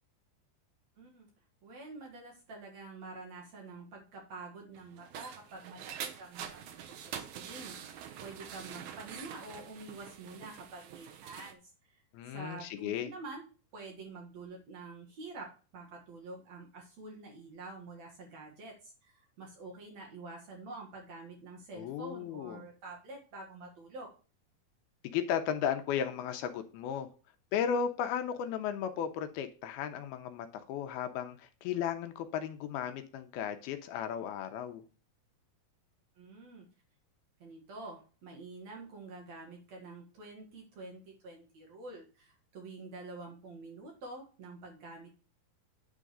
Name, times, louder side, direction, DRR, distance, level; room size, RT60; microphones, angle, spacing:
voice 1, 1.0-1.3 1.6-13.5 13.7-24.1 36.2-36.7 37.4-45.1, right 3 dB, 55° right, 2.4 m, -47 dB
sound 1, 4.7-11.5, right 9 dB, 85° right, 1.6 m, -45 dB
voice 2, 12.1-13.1 21.7-22.6 25.1-27.1 27.5-34.8, left 8 dB, 80° left, 2.5 m, -35 dB
9.3 x 3.7 x 6.6 m
omnidirectional pair, 4.6 m